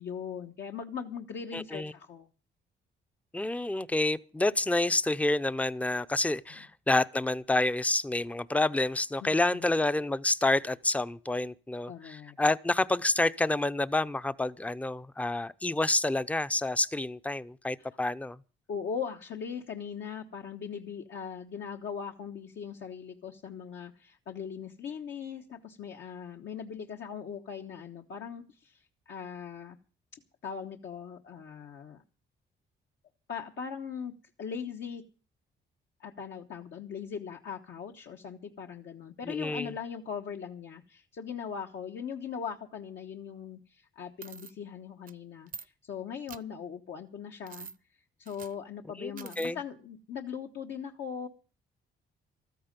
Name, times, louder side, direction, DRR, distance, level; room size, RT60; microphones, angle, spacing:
voice 1, 0.0-2.3 6.5-6.6 9.2-9.7 11.9-12.4 17.8-17.9 18.7-29.8 30.4-32.0 33.3-34.1 34.4-35.0 36.0-47.7 48.2-51.3, left 7 dB, 65° left, 1.2 m, -40 dB
voice 2, 1.5-1.9 3.3-18.4 39.3-39.7 49.0-49.6, left 2 dB, 5° left, 0.6 m, -28 dB
sound 1, 44.2-44.5 45.1-45.2 45.5-45.7 46.3-46.4 47.5-47.8 48.3-48.5 49.2-49.5, right 6 dB, 45° right, 0.7 m, -45 dB
14.5 x 13.5 x 5.3 m
cardioid pair, 90°, 20 cm